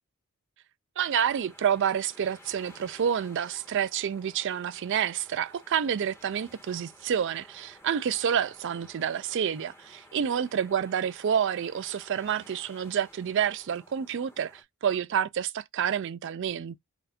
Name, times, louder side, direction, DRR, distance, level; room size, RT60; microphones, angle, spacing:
sound 1, 1.0-14.6, left 1 dB, 10° left, 1.3 m, -54 dB
voice 1, 1.0-16.8, right 8 dB, 55° right, 0.4 m, -28 dB
4.3 x 2.5 x 4.2 m
head